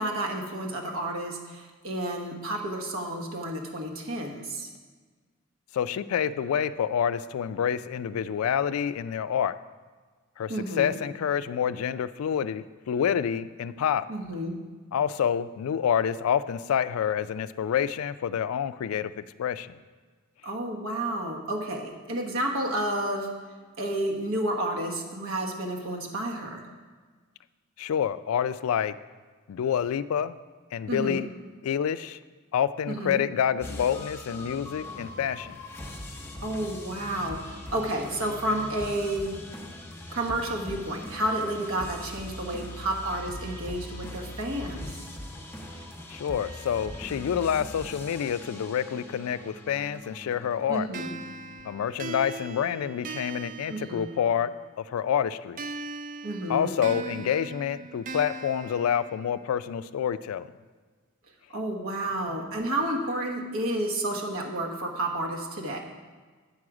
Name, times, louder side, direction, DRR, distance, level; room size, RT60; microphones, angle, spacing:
voice 1, 0.0-4.7 10.5-10.9 14.1-14.6 20.4-23.3 23.8-26.6 30.9-31.2 32.9-33.2 36.4-39.4 40.1-44.8 50.7-51.1 53.7-54.1 56.2-56.7 61.5-65.8, right 1 dB, 70° right, 1 dB, 1.2 m, -31 dB
voice 2, 5.7-9.6 10.4-14.0 14.9-19.8 27.8-29.0 29.5-30.4 30.7-31.3 31.6-32.2 32.5-35.6 46.1-50.9 51.6-54.5 54.8-55.6 56.5-60.5, left 8 dB, 75° left, 15 dB, 0.3 m, -28 dB
sound 1, 33.6-51.6, left 1 dB, 10° left, 0.8 m, -41 dB
sound 2, 50.9-54.6 55.6-59.6, right 3 dB, 40° right, 0.4 m, -40 dB
8.4 x 6.2 x 4.8 m, 1.4 s
head